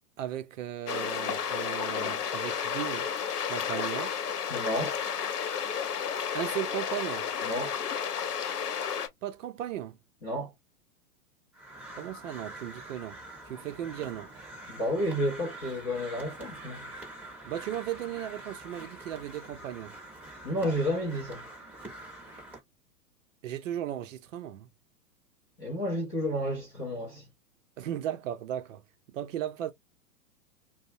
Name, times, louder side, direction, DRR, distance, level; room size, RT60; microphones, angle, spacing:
voice 1, 0.2-3.1 3.4-4.1 6.3-7.3 9.2-10.0 12.0-13.2 13.4-14.3 17.4-20.0 23.4-24.7 27.8-28.8 29.1-29.7, right 11 dB, 55° right, 0.5 m, -36 dB
sound 1, 0.9-9.1, left 7 dB, 75° left, 0.8 m, -32 dB
voice 2, 4.5-5.0 7.4-7.7 10.2-10.5 14.7-16.8 20.4-21.4 25.6-27.2, equal, 20° left, 0.3 m, -31 dB
Crow, 11.5-22.6, right 1 dB, 5° right, 0.7 m, -45 dB
2.5 x 2.0 x 2.7 m
hypercardioid pair, 110°, 47 cm